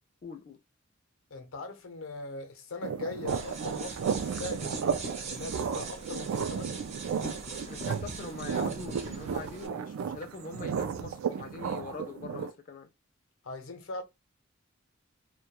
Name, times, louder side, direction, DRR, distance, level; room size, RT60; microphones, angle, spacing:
voice 1, 0.2-0.6 7.7-12.9, left 4 dB, 40° left, 0.3 m, -43 dB
voice 2, 1.3-4.8 5.3-6.8 13.4-14.0, left 2 dB, 85° left, 0.6 m, -40 dB
sound 1, 2.8-12.5, right 6 dB, 90° right, 0.3 m, -34 dB
sound 2, 3.3-9.7, right 3 dB, 35° right, 0.5 m, -42 dB
2.2 x 2.2 x 2.8 m
head